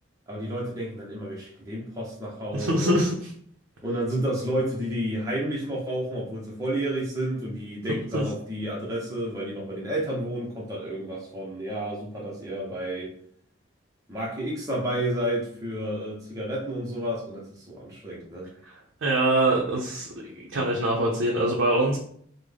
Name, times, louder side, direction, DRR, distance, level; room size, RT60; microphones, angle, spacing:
voice 1, 0.3-3.0 3.8-13.1 14.1-18.5, right 1 dB, 15° right, -5 dB, 0.6 m, -31 dB
voice 2, 2.5-3.3 8.1-8.2 19.0-22.0, right 1 dB, 75° right, -2 dB, 0.6 m, -24 dB
3.6 x 2.1 x 3.3 m, 0.62 s
head